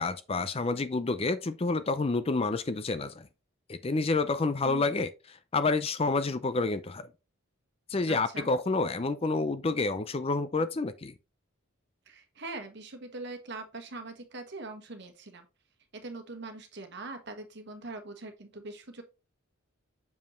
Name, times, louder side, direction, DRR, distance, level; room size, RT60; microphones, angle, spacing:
voice 1, 0.0-3.3 3.7-7.1 7.9-11.1, left 3 dB, 25° left, 0.4 m, -29 dB
voice 2, 8.1-8.5 12.1-15.5 15.9-19.0, right 2 dB, 55° right, 1.4 m, -42 dB
7.1 x 5.2 x 3.1 m
head